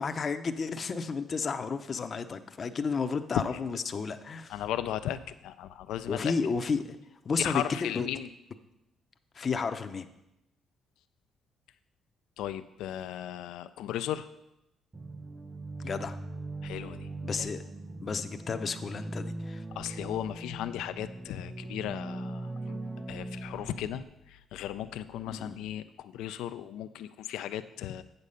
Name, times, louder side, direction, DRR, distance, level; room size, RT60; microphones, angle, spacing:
voice 1, 0.0-4.6 6.1-7.0 7.2-7.6 7.9-8.1 9.3-10.1 15.8-16.2 17.2-17.6 18.0-19.6 25.3-25.6, left 5 dB, 45° left, 8 dB, 0.6 m, -32 dB
voice 2, 4.5-6.3 7.4-8.3 12.4-14.3 16.6-17.1 17.4-17.5 19.8-22.8 23.1-28.0, left 11 dB, 90° left, 12 dB, 0.3 m, -36 dB
sound 1, 14.9-24.0, right 2 dB, 20° right, 0.5 m, -40 dB
8.2 x 6.6 x 5.5 m, 0.88 s
cardioid pair, 90°, 0 cm